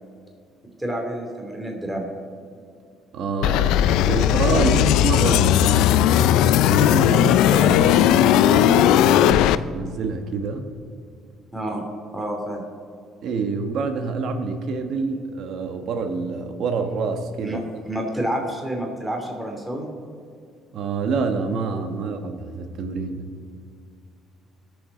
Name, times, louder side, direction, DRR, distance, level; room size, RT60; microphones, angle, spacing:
voice 1, 0.8-2.1 11.5-11.8 12.1-12.6 17.4-19.9, right 1 dB, 10° right, 0 dB, 2.9 m, -29 dB
voice 2, 3.1-5.9 6.6-9.5 9.7-10.7 13.2-17.6 20.7-23.2, right 4 dB, 65° right, 5 dB, 1.3 m, -27 dB
sound 1, 3.4-9.6, left 11 dB, 80° left, 0.4 m, -17 dB
21.0 x 7.0 x 4.1 m, 2.3 s
cardioid pair, 100°, 0 cm